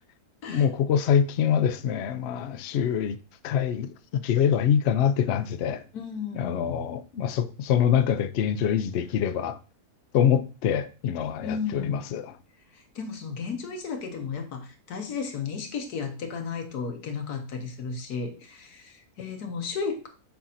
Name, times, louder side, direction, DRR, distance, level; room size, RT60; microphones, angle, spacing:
voice 1, 0.5-3.2 3.4-5.8 6.3-9.6 10.1-12.3, left 8 dB, 65° left, 0.6 m, -25 dB
voice 2, 5.9-6.8 11.4-12.1 12.7-20.1, left 5 dB, 90° left, 1.6 m, -34 dB
7.0 x 2.6 x 5.6 m
omnidirectional pair, 1.6 m